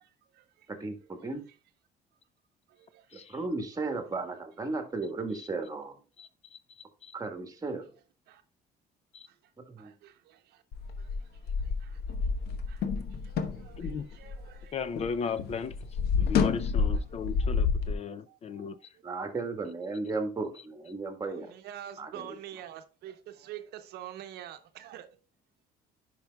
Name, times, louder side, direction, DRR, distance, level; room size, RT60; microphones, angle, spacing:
voice 1, 0.0-0.7 2.7-3.1 4.1-4.2 8.3-8.4 9.3-9.4 9.8-10.6 11.0-12.0 12.7-14.7 15.2-15.4 16.7-18.0 18.3-19.0 21.2-25.2, right 11 dB, 75° right, 0.7 m, -48 dB
voice 2, 0.7-1.4 3.3-6.0 7.1-7.9 9.6-9.9 19.0-21.5 22.0-22.3, right 3 dB, 20° right, 1.5 m, -35 dB
voice 3, 6.2-6.6 7.0-7.1 9.1-9.3 13.8-14.1 14.7-15.8 16.2-18.8, left 6 dB, 40° left, 0.4 m, -36 dB
sound 1, 10.7-15.1 15.4-17.9, left 5 dB, 70° left, 1.0 m, -29 dB
10.5 x 5.2 x 2.3 m
cardioid pair, 110°, 17 cm